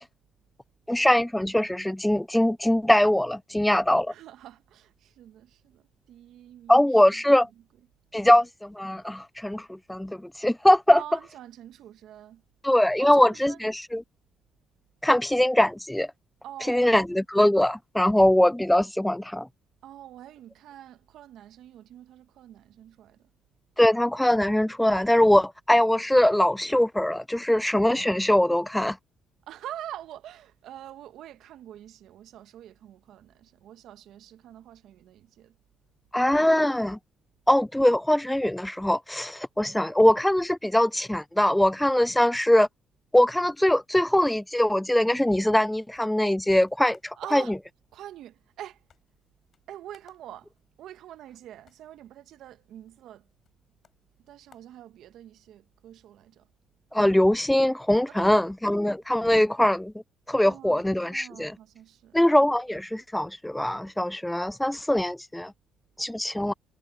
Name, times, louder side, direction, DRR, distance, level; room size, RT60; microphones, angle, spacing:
voice 1, 0.9-4.1 6.7-7.5 8.1-8.5 8.8-11.0 12.6-14.0 15.0-16.1 16.7-19.5 23.8-29.0 36.1-37.0 37.5-42.7 43.1-47.4 56.9-59.9 60.3-61.5 62.1-65.5 66.0-66.5, left 1 dB, 5° left, 0.4 m, -22 dB
voice 2, 4.1-7.5 8.2-8.5 10.9-12.4 13.0-13.6 16.4-16.9 19.8-23.3 29.5-35.6 47.1-47.5 47.9-48.8 49.7-50.5 50.8-53.3 54.2-56.5 58.1-58.5 60.4-62.2, right 12 dB, 75° right, 1.3 m, -45 dB
sound 1, 45.9-55.5, left 7 dB, 55° left, 7.9 m, -66 dB
supercardioid pair, 60°, 0 cm